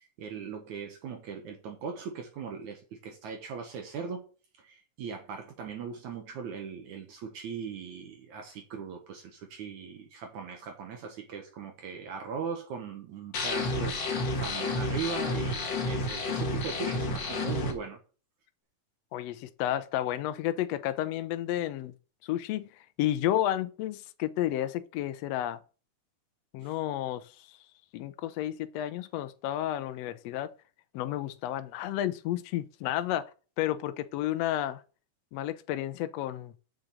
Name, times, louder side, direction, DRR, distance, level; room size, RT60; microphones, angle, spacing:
voice 1, 0.0-4.2 4.6-14.0 14.3-18.0 26.6-26.7, right 6 dB, 65° right, 2.5 m, -39 dB
sound 1, 13.3-17.7, left 2 dB, 45° left, 1.6 m, -30 dB
voice 2, 19.1-21.9 22.2-22.7 23.0-25.6 26.5-27.6 27.9-30.5 30.9-33.3 33.6-34.8 35.3-36.5, left 13 dB, 90° left, 1.4 m, -31 dB
6.6 x 6.6 x 7.3 m
omnidirectional pair, 3.8 m